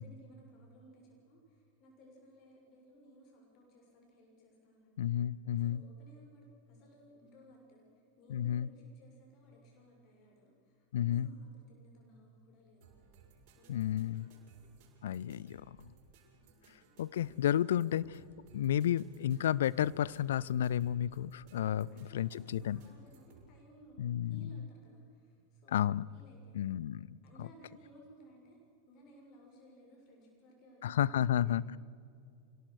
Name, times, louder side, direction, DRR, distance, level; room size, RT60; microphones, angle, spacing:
voice 1, 0.0-4.9 5.5-12.8 13.5-14.4 16.3-16.7 21.7-26.8 27.2-28.6 28.9-31.8, equal, 40° left, 0 dB, 6.9 m, -60 dB
voice 2, 5.0-5.8 8.3-8.7 10.9-11.3 13.7-14.3 15.0-15.8 17.0-18.2 18.5-22.8 24.0-24.5 25.7-26.0 26.5-27.2 30.8-31.8, left 11 dB, 60° left, 21 dB, 0.5 m, -32 dB
sound 1, 12.8-23.5, right 5 dB, 45° right, 6.5 m, -63 dB
27.0 x 17.5 x 6.6 m, 2.4 s
figure-of-eight pair, 90°, 0 cm